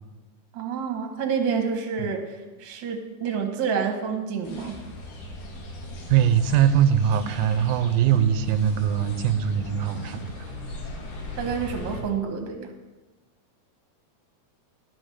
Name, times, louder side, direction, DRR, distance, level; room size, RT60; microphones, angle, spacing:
voice 1, 0.5-4.8 11.4-12.7, right 6 dB, 50° right, 3 dB, 1.6 m, -28 dB
sound 1, 4.4-12.0, left 1 dB, 75° left, 3.1 m, -38 dB
voice 2, 6.1-10.5, right 9 dB, 85° right, 10 dB, 2.2 m, -22 dB
11.5 x 6.2 x 6.5 m, 1.2 s
omnidirectional pair, 3.6 m